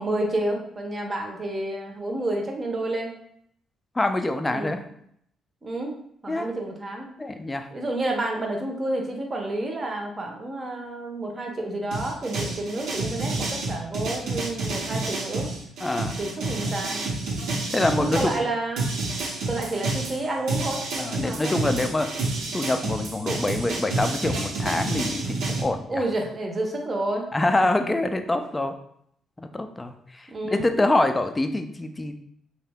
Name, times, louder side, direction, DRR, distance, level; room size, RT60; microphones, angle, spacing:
voice 1, 0.0-3.1 4.5-4.7 5.6-6.0 6.2-7.1 7.7-15.5 16.2-17.0 17.9-18.9 19.5-21.6 25.9-27.2 30.3-30.6, right 2 dB, 35° right, 1 dB, 0.6 m, -29 dB
voice 2, 4.0-4.8 6.3-6.5 7.2-7.7 15.8-16.2 17.7-18.4 21.0-22.1 22.5-26.0 27.3-28.8 29.5-32.1, left 2 dB, 20° left, 7 dB, 0.3 m, -25 dB
sound 1, 11.9-18.4 18.8-25.6, right 2 dB, 85° right, 0.7 m, -29 dB
2.7 x 2.1 x 3.4 m, 0.69 s
cardioid pair, 90°, 0 cm